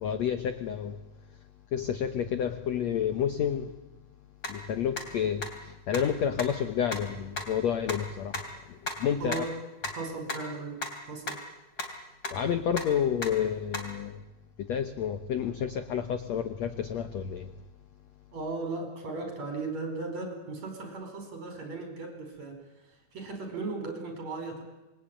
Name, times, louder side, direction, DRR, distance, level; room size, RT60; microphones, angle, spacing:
voice 1, 0.0-1.0 1.7-3.7 4.5-5.4 5.9-8.3 9.0-9.4 12.3-14.2 14.7-17.5, left 8 dB, 75° left, 1.5 m, -29 dB
sound 1, 4.4-4.5 5.0-5.1 5.4-5.5 5.9-6.0 6.4-6.5 6.9-7.0 7.4-7.5 7.9-8.0 8.3-8.4 8.9-9.0 9.3-9.4 9.8-9.9 10.3-10.4 10.8-10.9 11.3-11.4 11.8-11.9 12.2-12.3 12.8-12.9 13.2-13.3 13.7-13.8, left 2 dB, 25° left, 3.2 m, -32 dB
voice 2, 9.2-9.6 10.0-10.8 11.1-11.4 18.3-22.6 23.1-24.6, right 3 dB, 45° right, 5.8 m, -36 dB
27.0 x 21.5 x 9.0 m
omnidirectional pair, 4.6 m